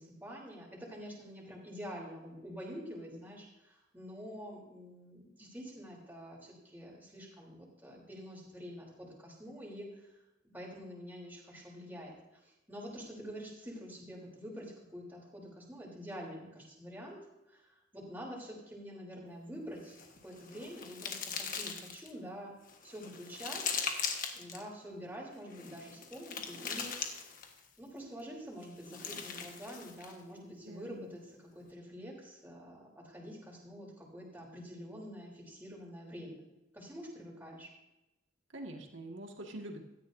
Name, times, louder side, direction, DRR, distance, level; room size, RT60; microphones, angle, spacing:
voice 1, 0.0-10.2 10.5-12.1 12.4-17.2 17.5-22.5 22.8-23.8 24.3-26.9 27.8-31.2 31.5-36.4 36.7-37.7, equal, 10° right, -4 dB, 3.5 m, -47 dB
sound 1, 19.8-22.1 22.7-24.6 25.5-27.7 28.6-30.2, left 6 dB, 45° left, 1.4 m, -40 dB
voice 2, 30.6-31.1 38.5-39.8, right 1 dB, 85° right, 2 dB, 1.9 m, -45 dB
17.0 x 13.0 x 2.7 m, 0.97 s
head